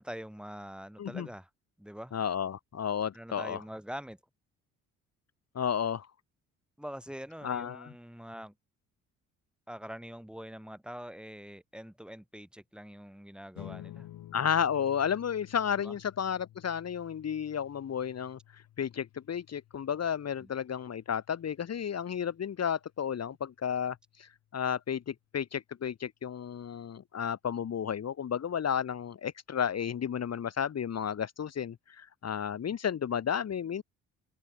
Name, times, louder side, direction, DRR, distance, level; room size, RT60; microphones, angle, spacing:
voice 1, 0.0-1.5 1.8-2.1 3.1-4.2 6.8-8.5 9.7-14.1 15.8-15.9 20.4-20.5, equal, ahead, 4.4 m, -44 dB
voice 2, 2.1-3.6 5.5-6.1 7.4-7.9 14.3-33.8, left 8 dB, 45° left, 1.7 m, -32 dB
sound 1, 13.5-24.3, left 13 dB, 65° left, 3.3 m, -53 dB
open air
hypercardioid pair, 55°, 36 cm